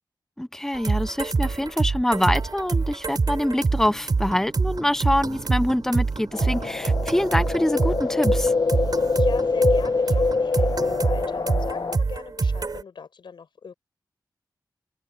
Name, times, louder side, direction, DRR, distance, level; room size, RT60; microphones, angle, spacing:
voice 1, 0.4-8.5, left 1 dB, 5° left, 1.0 m, -25 dB
sound 1, 0.7-12.8, right 4 dB, 60° right, 4.6 m, -26 dB
sound 2, 6.3-12.0, left 4 dB, 60° left, 1.3 m, -24 dB
voice 2, 9.1-13.7, left 6 dB, 85° left, 6.5 m, -40 dB
open air
cardioid pair, 60°, 8 cm